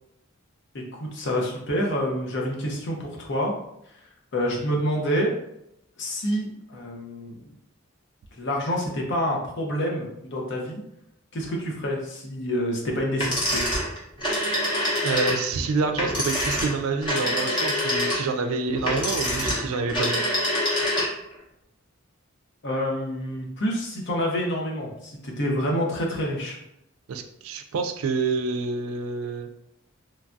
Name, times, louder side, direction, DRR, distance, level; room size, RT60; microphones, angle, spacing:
voice 1, 0.7-3.5 4.3-5.3 6.0-7.5 8.3-10.8 11.3-13.6 22.6-26.6, equal, 55° left, -1 dB, 0.6 m, -27 dB
sound 1, 13.2-21.3, equal, 20° left, 0.8 m, -25 dB
voice 2, 15.0-20.2 27.1-29.5, right 4 dB, 80° right, 7 dB, 0.3 m, -27 dB
3.1 x 2.3 x 2.5 m, 0.80 s
head